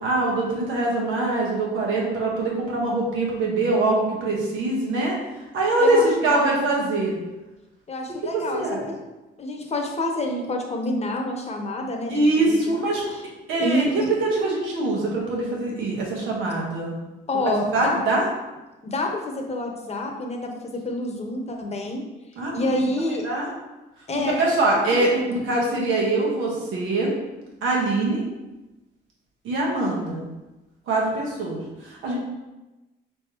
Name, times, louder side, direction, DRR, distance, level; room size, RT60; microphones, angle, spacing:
voice 1, 0.0-5.2 5.5-7.1 8.2-8.8 12.1-13.0 13.5-16.9 17.3-18.3 22.4-22.8 23.2-23.5 24.1-27.1 27.6-28.2 29.4-30.2 30.9-32.2, right 2 dB, 85° right, -3 dB, 1.3 m, -23 dB
voice 2, 5.8-6.6 7.9-9.0 9.4-12.8 13.1-13.2 13.6-14.1 17.3-18.0 18.8-22.0 22.5-23.2 24.1-25.4, left 1 dB, 30° left, 2 dB, 0.9 m, -28 dB
5.1 x 3.4 x 3.0 m, 1.1 s
cardioid pair, 90°, 20 cm